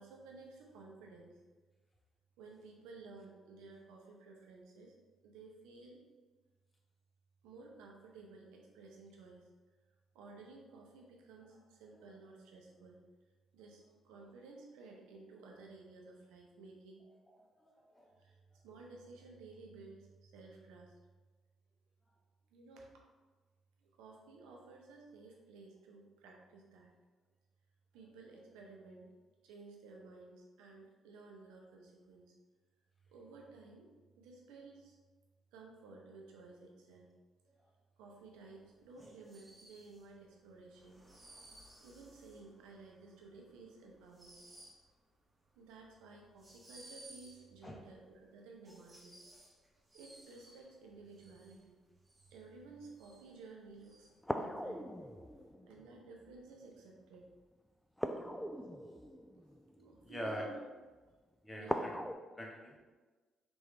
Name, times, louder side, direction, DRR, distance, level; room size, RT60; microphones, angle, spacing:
voice 1, 0.0-1.3 2.4-4.9 5.2-6.0 7.4-9.5 10.1-13.0 13.5-17.0 18.2-21.0 22.5-22.9 23.8-26.9 27.9-29.1 29.4-32.3 33.1-33.9 34.2-35.0 35.5-37.1 38.0-41.0 41.8-44.5 45.5-49.2 49.9-51.8 52.3-54.9 55.7-57.3 59.8-60.6 61.6-61.9, right 3 dB, 80° right, 0 dB, 0.6 m, -55 dB
voice 2, 17.3-18.1 47.6-47.8 60.0-60.5 61.4-61.9 62.3-62.8, equal, 20° left, -1 dB, 0.9 m, -44 dB
sound 1, 38.3-55.5, right 1 dB, 20° right, 0.9 m, -60 dB
sound 2, 54.2-56.4 58.0-60.2 61.7-62.1, equal, 5° left, 0.3 m, -41 dB
3.5 x 3.1 x 3.1 m, 1.3 s
hypercardioid pair, 50°, 0 cm